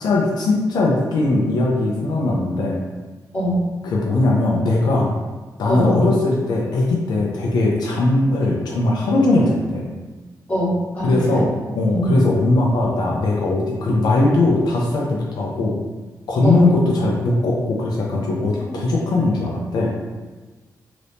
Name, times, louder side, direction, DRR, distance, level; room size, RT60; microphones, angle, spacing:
voice 1, 0.0-2.8 3.8-5.1 5.6-9.9 11.0-11.5 11.7-15.8 16.3-19.9, left 2 dB, 85° left, -3 dB, 0.5 m, -19 dB
voice 2, 10.5-11.4 11.9-12.1 16.4-16.6 18.6-18.7, equal, 20° left, -10 dB, 1.4 m, -22 dB
3.4 x 2.9 x 2.6 m, 1.3 s
wide cardioid pair, 175°, 7 cm